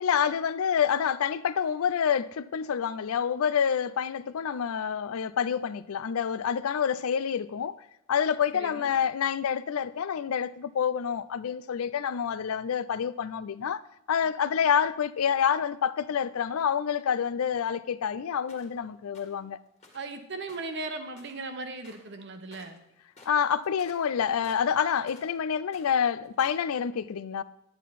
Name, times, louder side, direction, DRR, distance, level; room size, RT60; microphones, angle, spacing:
voice 1, 0.0-7.8 8.1-13.8 14.1-19.6 23.3-27.4, left 7 dB, 80° left, 0.4 m, -27 dB
voice 2, 8.5-9.0 19.9-22.8, right 3 dB, 55° right, 1.0 m, -37 dB
sound 1, 18.5-18.8 19.1-19.4 19.8-20.1 20.4-21.5 21.8-22.1 22.4-22.8 23.1-25.4 25.6-26.7, left 2 dB, 30° left, 1.8 m, -54 dB
10.5 x 9.1 x 4.1 m
head